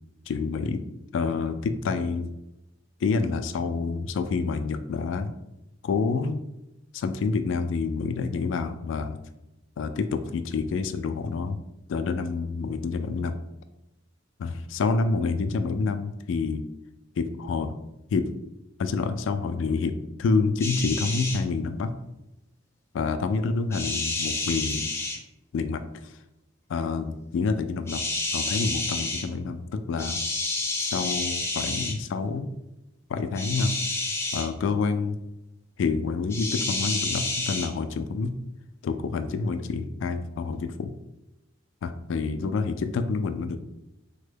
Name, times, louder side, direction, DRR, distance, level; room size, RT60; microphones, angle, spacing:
voice 1, 0.3-0.8 1.1-2.3 3.0-5.3 5.8-6.4 6.9-9.2 9.8-11.6 11.9-13.3 14.4-16.6 17.2-17.8 18.1-18.3 18.8-21.9 22.9-24.9 25.5-25.8 26.7-28.0 28.3-30.2 30.8-32.5 33.1-33.7 34.3-35.1 35.8-38.3 38.8-40.9 41.8-43.6, left 4 dB, 70° left, 10 dB, 0.3 m, -28 dB
Owls Hiss, 20.6-21.4 23.7-25.2 27.9-29.2 30.0-31.9 33.3-34.5 36.3-37.7, left 2 dB, 15° left, 0.5 m, -29 dB
3.5 x 2.1 x 3.4 m, 0.93 s
head